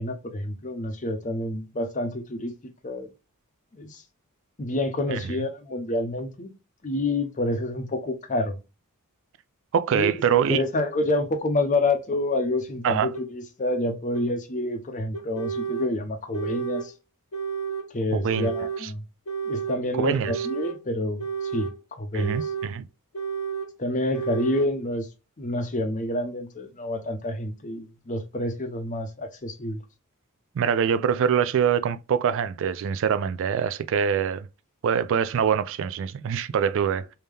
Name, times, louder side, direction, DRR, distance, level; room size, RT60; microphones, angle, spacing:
voice 1, 0.0-2.5 2.8-3.1 3.7-4.0 4.6-6.5 6.8-8.6 9.9-10.2 10.5-16.9 17.9-19.0 19.4-21.2 21.5-22.5 23.8-25.1 25.4-29.8, left 1 dB, 35° left, 0.7 m, -28 dB
voice 2, 9.7-10.6 12.8-13.1 18.1-18.5 18.8-18.9 19.9-20.5 22.1-22.8 30.6-34.5 34.8-37.2, right 7 dB, 60° right, 0.3 m, -24 dB
sound 1, 13.1-13.2 14.1-14.2 15.1-15.9 16.3-16.9 17.3-17.9 18.3-18.8 19.3-19.8 20.2-20.8 21.2-21.8 22.2-22.7 23.1-23.7 24.1-24.7, right 6 dB, 80° left, 0.8 m, -31 dB
3.5 x 2.7 x 3.2 m
head